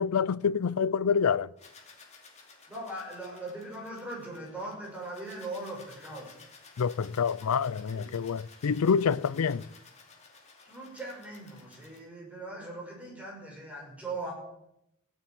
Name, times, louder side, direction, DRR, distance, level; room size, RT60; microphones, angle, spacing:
voice 1, 0.0-1.5 6.8-9.7, left 6 dB, 90° left, 0.5 m, -27 dB
sound 1, 1.6-12.0, left 4 dB, 30° left, 2.8 m, -55 dB
voice 2, 2.7-6.3 7.9-8.1 10.6-14.3, right 2 dB, 5° right, 5.7 m, -40 dB
16.5 x 7.3 x 9.3 m
head